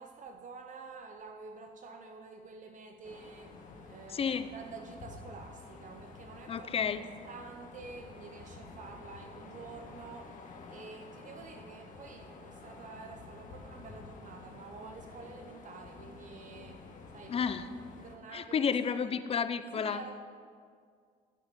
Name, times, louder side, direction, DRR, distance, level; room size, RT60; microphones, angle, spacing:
voice 1, 0.0-6.7 7.2-16.9 17.1-17.7 18.0-19.1 19.8-20.1, right 4 dB, 50° right, 5 dB, 0.8 m, -49 dB
sound 1, 3.0-18.2, left 4 dB, 50° left, 1.5 m, -50 dB
voice 2, 4.1-4.5 6.5-7.0 17.3-17.7 18.3-20.0, left 6 dB, 35° left, 12 dB, 0.6 m, -31 dB
14.0 x 7.8 x 5.2 m, 2.1 s
cardioid pair, 110°, 17 cm